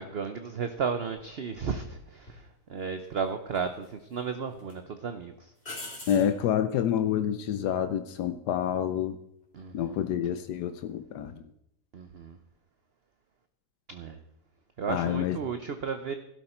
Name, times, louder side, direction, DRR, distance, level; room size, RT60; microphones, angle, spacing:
voice 1, 0.0-5.5 5.9-6.1 9.5-10.0 11.9-12.4 13.9-14.2 14.8-16.1, right 6 dB, 50° right, 8 dB, 0.8 m, -34 dB
sound 1, 2.3-2.4 3.5-4.2 4.6-4.7 5.6-6.3 9.4-9.8, left 2 dB, 40° left, 3.1 m, -42 dB
voice 2, 6.1-9.2 9.7-11.3 14.9-15.4, left 9 dB, 85° left, 10 dB, 1.3 m, -28 dB
15.5 x 12.5 x 4.4 m, 0.78 s
omnidirectional pair, 1.7 m